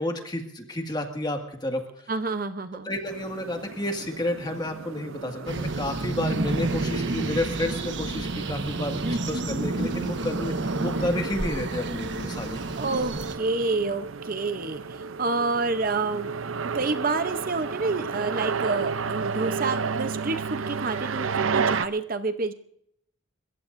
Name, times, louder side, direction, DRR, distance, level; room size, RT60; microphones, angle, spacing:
voice 1, 0.0-1.8 2.8-12.6, left 1 dB, 20° left, 4 dB, 1.9 m, -31 dB
voice 2, 2.1-2.9 9.0-9.5 12.8-16.3 16.7-22.5, right 3 dB, 45° right, 10 dB, 0.7 m, -28 dB
sound 1, 3.1-21.9, right 5 dB, 85° right, 0.6 m, -33 dB
sound 2, 5.5-13.4, right 2 dB, 60° right, 1.3 m, -30 dB
30.0 x 15.5 x 2.6 m, 0.72 s
head